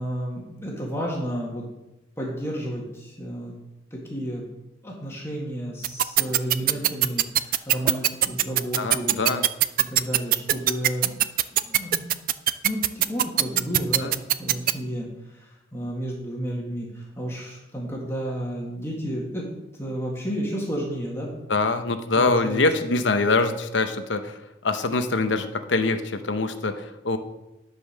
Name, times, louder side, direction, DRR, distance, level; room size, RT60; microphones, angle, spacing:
voice 1, 0.0-1.6 2.2-3.5 3.9-4.4 4.8-9.4 9.9-11.2 11.6-12.1 12.6-19.5 19.8-21.3 22.1-22.6, equal, 15° left, -3 dB, 1.8 m, -32 dB
sound 1, 5.8-14.7, right 13 dB, 45° right, 0.3 m, -19 dB
voice 2, 8.8-9.4 14.0-14.1 21.5-27.2, left 3 dB, 75° left, 8 dB, 0.9 m, -24 dB
10.0 x 5.3 x 6.4 m, 0.94 s
head